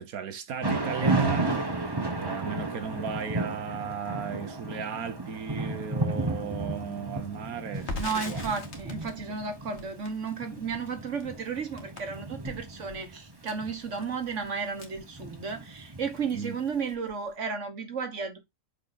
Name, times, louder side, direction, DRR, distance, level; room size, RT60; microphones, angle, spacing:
voice 1, 0.0-1.7 2.2-8.5 16.3-16.6, right 7 dB, 80° right, 1.4 m, -35 dB
Thunder / Rain, 0.6-16.6, right 2 dB, 20° right, 1.0 m, -33 dB
Crackle, 7.7-15.8 16.1-16.3 16.6-17.3, left 3 dB, 65° left, 1.8 m, -43 dB
voice 2, 8.0-18.4, right 5 dB, 60° right, 1.5 m, -33 dB
6.5 x 4.7 x 4.0 m
omnidirectional pair, 1.5 m